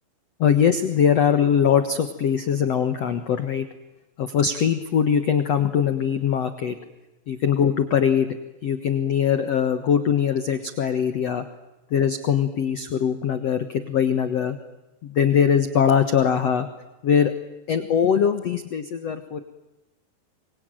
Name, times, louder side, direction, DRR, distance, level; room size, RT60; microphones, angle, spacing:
voice 1, 0.4-3.7 4.2-6.8 7.3-8.3 8.6-11.4 11.9-14.6 15.0-16.7 17.0-17.3 17.7-19.4, left 8 dB, 80° left, 9 dB, 1.4 m, -21 dB
27.0 x 24.0 x 9.1 m, 1.0 s
omnidirectional pair, 5.3 m